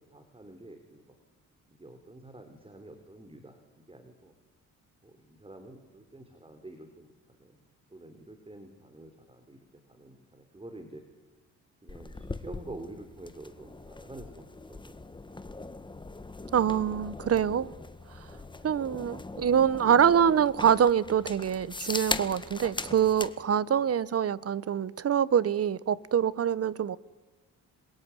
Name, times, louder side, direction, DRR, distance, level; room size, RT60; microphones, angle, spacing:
voice 1, 0.1-1.0 1.7-4.3 5.0-7.6 7.9-9.6 9.9-11.0 11.8-15.0 18.3-18.6 23.4-24.0, right 2 dB, 15° right, 3.8 m, -48 dB
sound 1, 11.9-23.3, left 2 dB, 15° left, 1.7 m, -40 dB
voice 2, 16.5-17.7 18.6-27.0, right 8 dB, 45° right, 1.1 m, -25 dB
27.0 x 21.5 x 9.9 m
cardioid pair, 95°, 33 cm